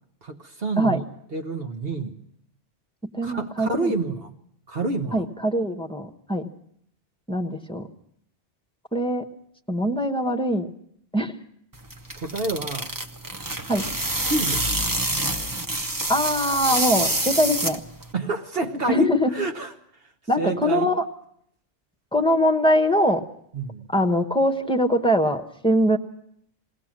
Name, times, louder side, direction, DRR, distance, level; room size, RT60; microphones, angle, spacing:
voice 1, 0.2-1.0 1.3-2.2 3.2-4.4 4.7-5.3 12.1-12.9 14.2-14.6 18.1-19.7 20.0-20.9 23.5-23.9, right 2 dB, 55° right, 5 dB, 1.3 m, -28 dB
voice 2, 3.1-3.9 5.1-6.4 7.3-7.9 8.9-9.2 9.7-10.7 11.1-11.3 13.7-13.8 16.1-17.8 18.9-19.3 20.3-21.0 22.1-23.2 23.9-26.0, equal, 5° left, 6 dB, 1.1 m, -22 dB
sound 1, 11.7-18.1, right 1 dB, 20° right, 0.8 m, -27 dB
21.0 x 17.5 x 7.4 m, 0.68 s
omnidirectional pair, 1.2 m